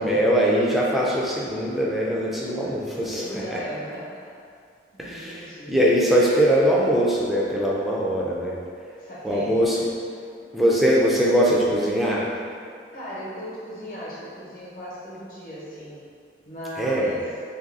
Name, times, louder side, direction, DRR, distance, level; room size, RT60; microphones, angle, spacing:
voice 1, 0.0-3.2 3.5-3.6 5.0-8.6 9.2-9.8 10.5-12.3 16.8-17.1, equal, ahead, -5 dB, 0.3 m, -21 dB
voice 2, 2.4-2.8 3.1-4.2 4.9-5.7 9.0-9.8 12.9-16.0 16.4-17.3, equal, 50° left, -8 dB, 0.9 m, -37 dB
2.7 x 2.6 x 3.8 m, 2.3 s
head